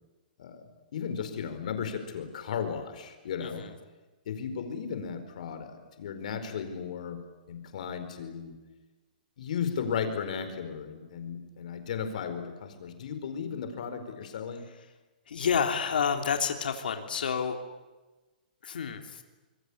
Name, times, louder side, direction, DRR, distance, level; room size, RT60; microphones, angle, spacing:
voice 1, 0.9-3.6 4.3-7.2 7.5-8.5 9.4-14.6, left 7 dB, 55° left, 8 dB, 4.7 m, -35 dB
voice 2, 3.4-3.7 15.3-17.6 18.6-19.2, left 6 dB, 90° left, 5 dB, 3.2 m, -29 dB
26.5 x 23.0 x 8.7 m, 1.2 s
hypercardioid pair, 175°, 5 cm